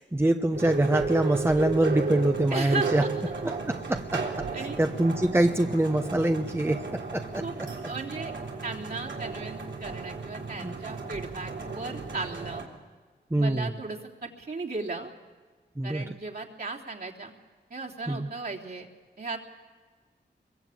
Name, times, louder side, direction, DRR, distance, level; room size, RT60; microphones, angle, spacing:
voice 1, 0.0-3.0 3.4-7.4 10.6-10.7 13.3-13.7 15.8-16.0 18.1-18.3, right 1 dB, 15° right, 5 dB, 1.0 m, -25 dB
sound 1, 0.5-12.6, right 4 dB, 90° right, 3.4 m, -34 dB
voice 2, 2.5-3.1 3.9-4.8 7.4-7.5 7.9-8.3 8.6-12.7 13.4-15.1 15.8-17.3 17.7-18.9 19.2-19.4, right 3 dB, 55° right, -2 dB, 3.4 m, -36 dB
25.0 x 22.5 x 8.7 m, 1.4 s
wide cardioid pair, 80°, 19 cm